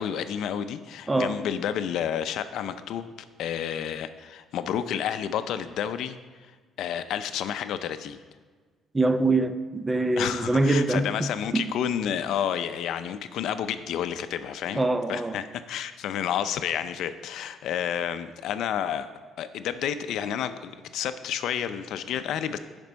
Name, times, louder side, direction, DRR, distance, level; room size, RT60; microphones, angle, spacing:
voice 1, 0.0-3.1 3.4-6.2 6.8-8.2 10.2-14.8 15.1-19.1 19.4-22.6, left 9 dB, 70° left, 0.5 m, -30 dB
voice 2, 1.1-1.4 8.9-11.7 14.8-15.4, right 2 dB, 15° right, 0.4 m, -24 dB
11.0 x 5.2 x 4.6 m
cardioid pair, 130°, 0 cm